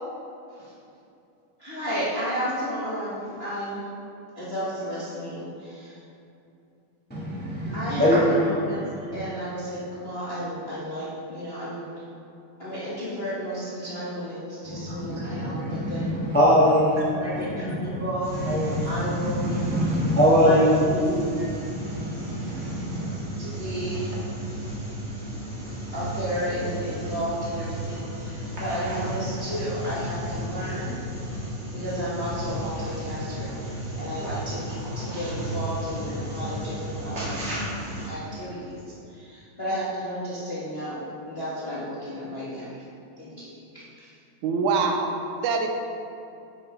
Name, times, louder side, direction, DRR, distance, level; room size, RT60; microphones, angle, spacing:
voice 1, 1.6-3.9 4.4-6.0 7.7-8.9 9.1-11.8 12.6-16.2 17.1-18.4 18.8-19.6 20.3-20.6 20.9-21.3 23.4-24.1 25.9-31.0 31.7-37.4 38.0-38.8 39.1-42.8 43.2-44.1, equal, 35° left, -10 dB, 1.0 m, -33 dB
voice 2, 7.1-8.5 14.7-17.4 17.7-17.9 18.4-20.8 21.5-23.1, equal, 5° left, -8 dB, 0.7 m, -23 dB
sound 1, 18.2-38.1, right 1 dB, 30° right, 1.6 m, -33 dB
voice 3, 44.4-45.7, right 4 dB, 85° right, 3 dB, 2.1 m, -24 dB
9.9 x 6.6 x 3.3 m, 2.6 s
omnidirectional pair, 3.4 m